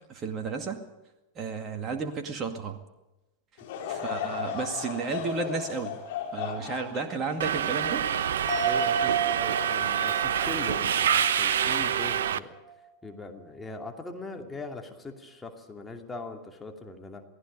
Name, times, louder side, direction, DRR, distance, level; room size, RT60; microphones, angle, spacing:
voice 1, 0.1-0.8 1.4-2.8 3.9-5.9 6.3-8.1, right 4 dB, 25° right, 5 dB, 2.1 m, -32 dB
Laughter / Crowd, 3.6-9.0 9.6-9.7 10.5-10.8, left 7 dB, 55° left, 4.9 m, -36 dB
Subway metro underground, 7.4-12.4, right 9 dB, 60° right, 0.7 m, -26 dB
sound 1, 8.5-12.2 12.5-12.6, right 6 dB, 25° left, 4.1 m, -32 dB
voice 2, 8.6-12.5 13.0-17.2, left 3 dB, 10° left, 3 dB, 2.6 m, -41 dB
28.0 x 18.0 x 5.3 m, 1.0 s
figure-of-eight pair, 90°, 0 cm